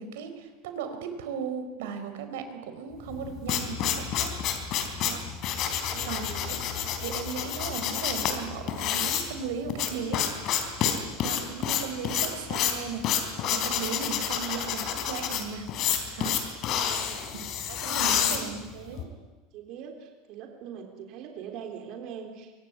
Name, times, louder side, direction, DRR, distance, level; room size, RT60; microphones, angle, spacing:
voice 1, 0.0-4.3 5.0-5.2 6.0-6.6 7.0-10.2 11.2-15.7 16.1-16.4 17.3-19.0, right 6 dB, 85° right, 8 dB, 4.6 m, -37 dB
sound 1, 3.1-19.0, left 9 dB, 35° left, 3.6 m, -29 dB
voice 2, 5.8-6.5 16.6-17.2 17.8-18.3 18.9-19.2 19.5-22.5, right 7 dB, 40° right, 4 dB, 3.5 m, -43 dB
25.0 x 24.5 x 9.5 m, 1.3 s
supercardioid pair, 180°, 0 cm